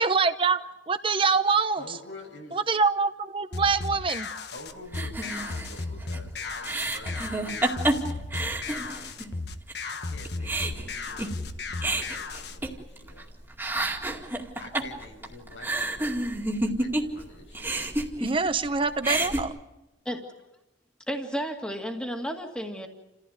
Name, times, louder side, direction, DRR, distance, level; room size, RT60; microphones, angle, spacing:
voice 1, 0.0-1.8 2.5-4.3 18.2-19.5, right 4 dB, 30° right, 10 dB, 0.8 m, -25 dB
voice 2, 1.7-2.6 4.5-7.8 9.8-11.5 12.0-13.3 14.6-16.1 16.6-18.1, left 2 dB, 85° left, 3 dB, 6.2 m, -46 dB
sound 1, 3.5-12.6, left 3 dB, 60° left, 1.3 m, -35 dB
sound 2, 4.9-9.3 9.7-9.8 10.1-13.2 13.5-17.2 17.5-18.7 18.9-19.4, right 2 dB, 10° right, 2.2 m, -30 dB
voice 3, 21.1-22.9, equal, 5° left, 3 dB, 2.1 m, -32 dB
29.5 x 15.5 x 9.3 m, 0.99 s
head